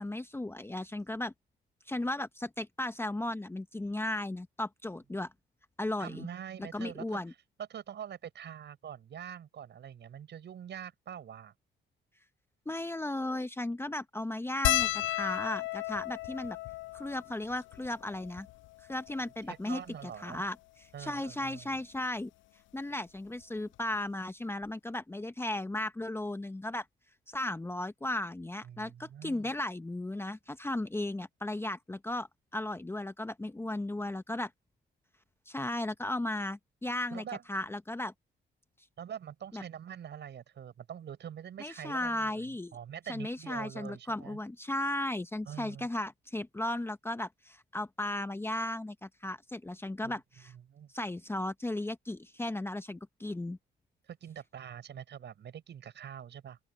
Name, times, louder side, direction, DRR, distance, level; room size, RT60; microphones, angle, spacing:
voice 1, 0.0-1.3 1.9-5.3 5.8-6.3 6.6-7.3 12.7-16.6 16.9-18.5 18.9-20.6 20.8-22.3 22.7-26.9 27.3-32.3 32.5-34.5 35.5-38.1 39.5-39.6 41.6-42.7 43.1-50.5 50.9-53.6, left 1 dB, 10° left, 0.9 m, -35 dB
voice 2, 6.0-7.2 7.7-11.5 19.5-20.4 20.9-21.7 28.6-29.5 37.1-37.4 39.0-44.4 45.5-45.9 50.0-50.2 50.7-50.9 54.1-56.6, right 9 dB, 60° right, 6.9 m, -44 dB
sound 1, 14.6-19.3 20.0-20.1 20.3-20.5 21.7-22.0 23.4-23.5 23.8-23.9, left 16 dB, 75° left, 0.4 m, -34 dB
open air
cardioid pair, 90°, 20 cm